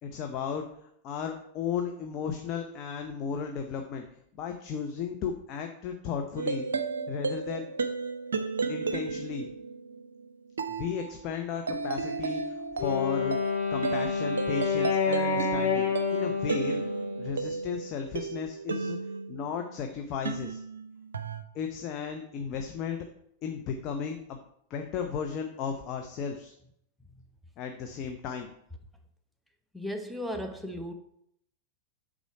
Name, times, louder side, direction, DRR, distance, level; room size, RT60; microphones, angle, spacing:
voice 1, 0.0-4.0 4.4-6.7 7.1-7.7 8.7-9.5 10.7-13.4 13.7-16.9 17.2-19.0 19.3-20.6 21.5-23.0 23.4-24.4 24.7-26.5 27.6-28.5, left 6 dB, 35° left, 4 dB, 0.7 m, -35 dB
sound 1, 6.4-19.7 20.2-21.4, right 4 dB, 70° right, 0.5 m, -34 dB
Wind instrument woodwind instrument, 12.8-17.8, left 5 dB, 65° left, 2.0 m, -29 dB
voice 2, 29.7-30.9, equal, ahead, 5 dB, 0.8 m, -35 dB
8.2 x 3.8 x 4.8 m, 0.73 s
figure-of-eight pair, 90°, 0 cm